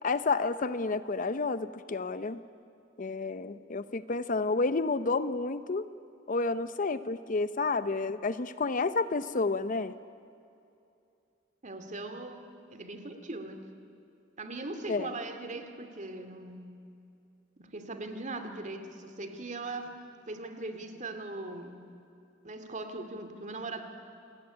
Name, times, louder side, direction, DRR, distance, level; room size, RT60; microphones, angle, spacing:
voice 1, 0.0-2.4 3.0-5.9 6.3-9.9 14.9-15.1, left 3 dB, 45° left, 13 dB, 0.7 m, -30 dB
voice 2, 11.6-13.7 14.4-16.7 17.6-21.8 22.4-23.9, right 2 dB, 40° right, 7 dB, 2.4 m, -40 dB
28.5 x 20.5 x 9.9 m, 2.6 s
head